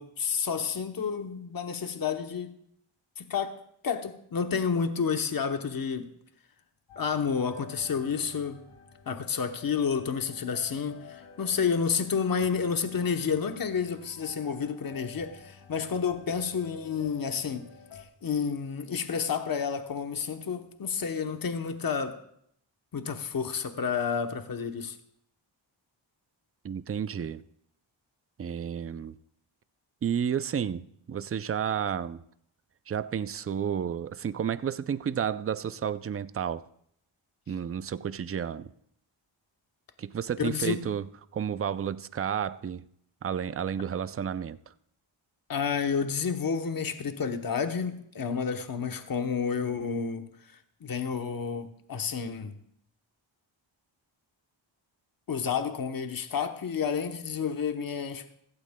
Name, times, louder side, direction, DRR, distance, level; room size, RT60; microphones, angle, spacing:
voice 1, 0.0-2.5 3.2-3.6 3.8-6.1 7.0-8.6 9.1-17.7 17.9-22.2 22.9-25.0 40.4-40.8 45.5-52.6 55.3-58.3, left 6 dB, 45° left, 0.9 m, -30 dB
sound 1, 6.9-18.0, left 6 dB, 90° left, 2.3 m, -51 dB
voice 2, 26.6-27.4 28.4-29.2 30.0-32.2 32.9-36.6 37.5-38.7 40.0-41.1 41.3-42.8 43.2-44.6, right 8 dB, 30° right, 0.4 m, -31 dB
16.0 x 15.5 x 2.2 m
wide cardioid pair, 115°, 48 cm